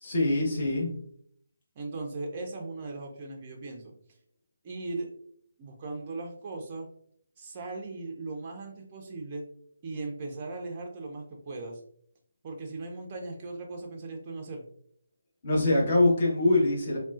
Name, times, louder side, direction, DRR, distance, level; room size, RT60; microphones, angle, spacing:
voice 1, 0.0-0.9 15.4-17.0, left 2 dB, 40° left, -3 dB, 1.1 m, -24 dB
voice 2, 1.8-3.9 4.6-5.1 5.6-6.9 7.4-9.4 9.8-11.8 12.4-14.7, right 3 dB, 30° right, 2 dB, 0.5 m, -38 dB
3.6 x 2.3 x 2.4 m, 0.65 s
figure-of-eight pair, 150°, 0 cm